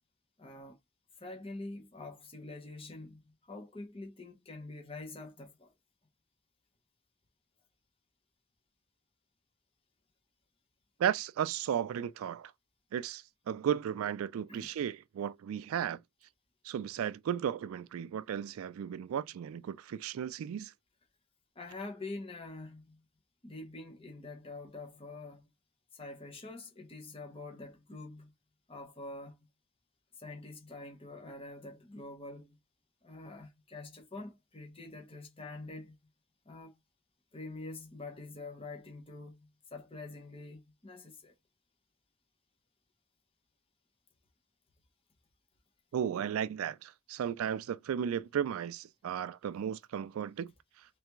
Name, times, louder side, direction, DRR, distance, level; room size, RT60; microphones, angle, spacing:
voice 1, 0.4-0.8 1.2-5.7 14.5-14.7 21.5-23.0 23.4-25.5 25.9-28.3 28.7-29.4 30.1-32.6 33.0-35.9 36.4-36.8 37.3-41.3, left 2 dB, 25° left, 1.0 m, -46 dB
voice 2, 11.0-12.5 12.9-16.0 16.6-20.7 45.9-50.5, right 9 dB, 85° right, 0.3 m, -35 dB
3.4 x 3.3 x 3.0 m
head